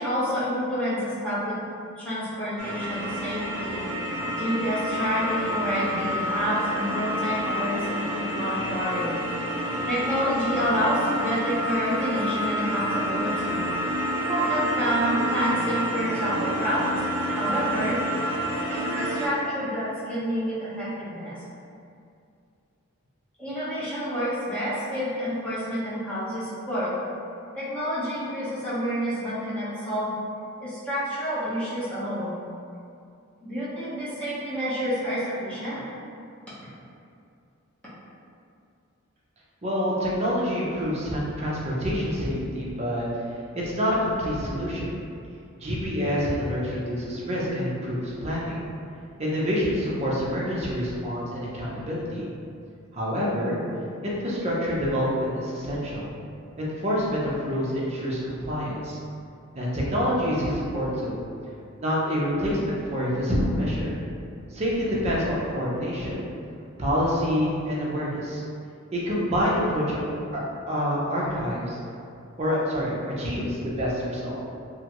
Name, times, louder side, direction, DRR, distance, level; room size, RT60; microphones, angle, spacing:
voice 1, 0.0-1.6 2.0-9.2 9.5-13.6 14.1-18.0 18.7-21.4 23.4-26.9 27.5-30.1 30.6-32.4 33.4-35.8, equal, 5° left, -12 dB, 0.9 m, -28 dB
sound 1, 2.6-19.3, equal, 75° right, 0.5 m, -29 dB
voice 2, 39.6-43.0 43.5-44.9 45.6-48.6 49.2-52.3 52.9-53.6 54.0-56.1 56.6-59.0 59.5-61.2 61.8-63.9 64.5-66.2 66.8-68.4 68.9-70.1 70.3-70.4 70.7-71.8 72.4-74.4, equal, 30° right, -6 dB, 0.6 m, -27 dB
3.0 x 2.4 x 2.8 m, 2.5 s
head